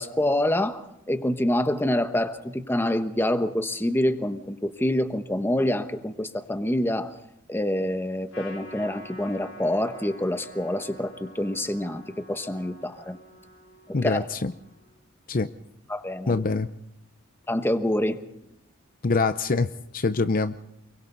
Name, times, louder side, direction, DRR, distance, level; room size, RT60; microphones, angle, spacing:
voice 1, 0.0-7.1 7.5-13.2 14.0-14.2 15.9-16.4 17.5-18.2, left 1 dB, 10° left, 8 dB, 1.2 m, -26 dB
Trumpet, 8.3-15.0, left 1 dB, 75° left, 5.3 m, -48 dB
voice 2, 13.9-14.5 15.3-15.5 16.3-16.7 19.0-19.7 19.9-20.5, left 3 dB, 45° left, 11 dB, 0.7 m, -24 dB
29.0 x 22.5 x 4.0 m, 0.77 s
head